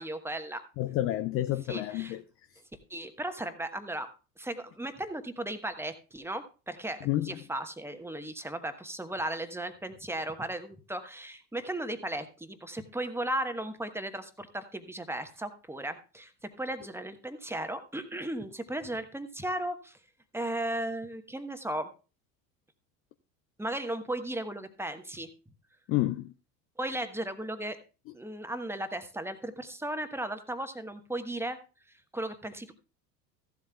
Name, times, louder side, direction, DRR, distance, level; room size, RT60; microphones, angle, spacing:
voice 1, 0.0-0.6 1.7-2.1 2.9-4.1 4.4-16.3 16.6-20.0 20.3-21.9 23.6-25.3 26.8-27.8 28.1-31.6 32.1-32.7, right 1 dB, 5° right, 1.2 m, -36 dB
voice 2, 0.8-2.2 7.0-7.3 25.9-26.3, left 15 dB, 30° left, 0.4 m, -29 dB
14.5 x 11.5 x 2.3 m
figure-of-eight pair, 70°, 50 cm